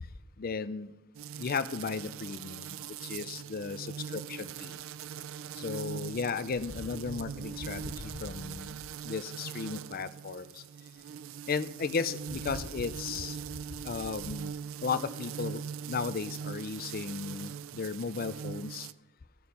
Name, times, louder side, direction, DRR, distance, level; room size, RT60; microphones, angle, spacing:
voice 1, 0.4-0.9 1.4-2.7 3.0-4.8 5.6-10.6 11.5-13.4 13.8-14.5 14.8-15.6 15.9-18.9, left 5 dB, 45° left, 15 dB, 0.5 m, -35 dB
sound 1, 1.1-18.9, right 7 dB, 80° right, 0.4 m, -41 dB
15.0 x 7.0 x 5.3 m, 1.0 s
head